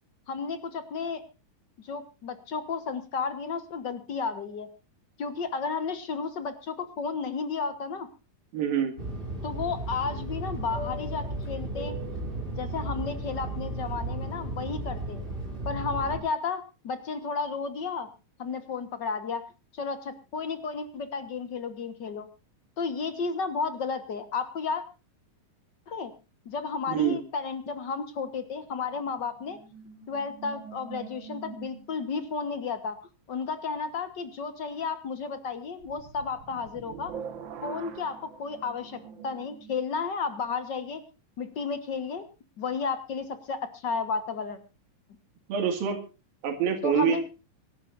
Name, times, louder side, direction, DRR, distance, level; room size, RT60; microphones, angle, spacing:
voice 1, 0.3-1.2 1.8-4.7 5.2-8.1 9.4-12.0 12.6-15.2 15.6-18.1 18.4-19.4 19.7-22.3 22.8-24.8 25.9-26.1 26.4-29.6 30.1-33.0 33.3-37.1 37.6-41.0 41.4-42.3 42.6-44.6 46.8-47.2, left 5 dB, 65° left, 10 dB, 1.0 m, -32 dB
voice 2, 8.5-8.9 26.9-27.2 45.5-46.0 46.4-47.2, right 8 dB, 85° right, 5 dB, 4.0 m, -26 dB
Fixed-wing aircraft airplane, 9.0-16.2, right 2 dB, 15° right, 5.7 m, -34 dB
sound 1, 28.8-32.2 35.8-39.8, right 7 dB, 55° right, 1.4 m, -44 dB
26.0 x 12.5 x 2.6 m, 0.31 s
omnidirectional pair, 4.0 m